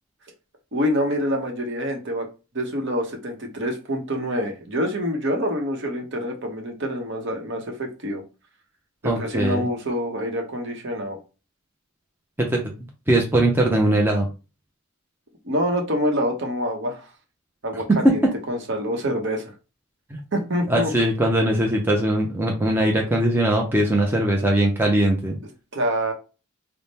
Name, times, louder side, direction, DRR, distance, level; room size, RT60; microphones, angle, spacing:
voice 1, 0.7-2.3 2.5-8.2 9.0-11.2 15.4-17.0 17.6-19.5 20.3-20.9 25.7-26.1, equal, 55° right, 3 dB, 0.8 m, -26 dB
voice 2, 9.0-9.7 12.4-12.6 13.1-14.2 20.7-25.4, right 1 dB, 10° right, 0 dB, 0.5 m, -20 dB
3.5 x 2.0 x 4.1 m, 0.32 s
head